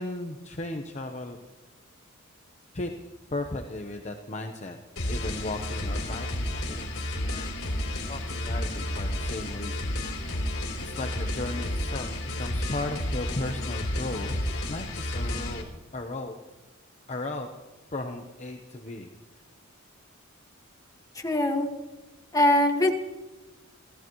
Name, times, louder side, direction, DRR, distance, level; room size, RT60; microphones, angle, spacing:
voice 1, 0.0-1.4 2.7-2.9 3.3-4.8 5.1-15.7 15.9-16.4 17.1-17.5 17.9-19.1, left 2 dB, 35° left, 4 dB, 1.0 m, -36 dB
sound 1, 5.0-15.6, left 1 dB, 85° left, 3.6 m, -31 dB
voice 2, 21.1-21.7 22.3-22.9, left 1 dB, 15° left, 2 dB, 1.8 m, -22 dB
30.0 x 14.5 x 3.1 m, 1.1 s
head